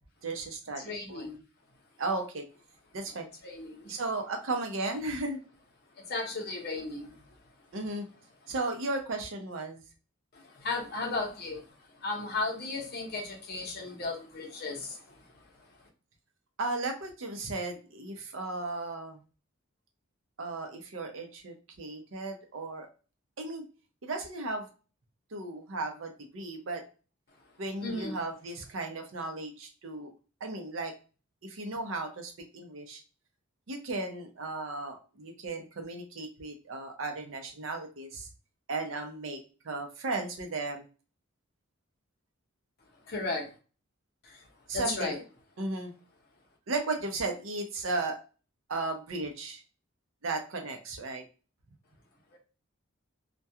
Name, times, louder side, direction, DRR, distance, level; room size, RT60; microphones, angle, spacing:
voice 1, 0.2-0.8 1.1-1.3 2.0-2.4 2.9-3.3 3.9-5.4 7.7-8.1 8.5-9.8 16.6-19.2 20.4-22.9 23.4-23.6 24.0-24.7 25.3-26.8 27.6-30.1 30.4-30.9 31.4-33.0 33.7-38.3 38.7-39.4 39.6-40.9 44.7-45.1 45.6-45.9 46.7-48.2 48.7-49.6 50.2-51.2, right 3 dB, 65° right, 4 dB, 0.6 m, -35 dB
voice 2, 0.8-1.4 3.4-4.0 6.0-7.3 10.3-11.7 11.9-15.8 27.8-28.2 43.0-43.5 44.2-44.5 44.7-45.2 52.3-52.4, left 3 dB, 50° left, 0 dB, 0.8 m, -35 dB
2.3 x 2.2 x 2.7 m, 0.35 s
head